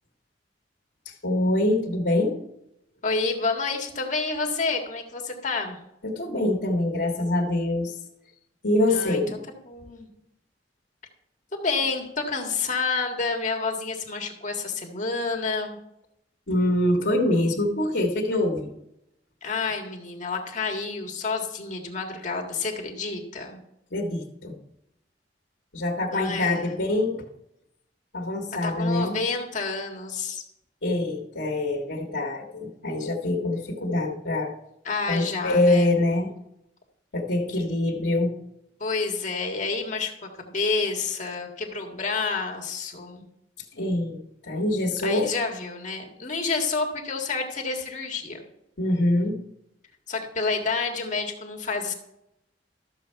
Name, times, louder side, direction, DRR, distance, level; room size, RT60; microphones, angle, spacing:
voice 1, 1.1-2.4 6.0-8.0 8.6-9.4 16.5-18.7 23.9-24.6 25.7-27.2 28.1-29.2 30.8-34.5 35.1-36.3 37.1-38.3 43.7-44.2 44.4-45.3 48.8-49.4, left 1 dB, 75° left, -2 dB, 1.7 m, -24 dB
voice 2, 3.0-5.8 8.8-9.2 9.7-10.1 11.5-15.8 19.4-23.6 26.1-26.7 28.6-30.4 34.9-36.0 38.8-43.2 45.0-48.4 50.1-51.9, left 4 dB, 45° left, 1 dB, 1.7 m, -29 dB
13.0 x 7.2 x 4.6 m, 0.82 s
head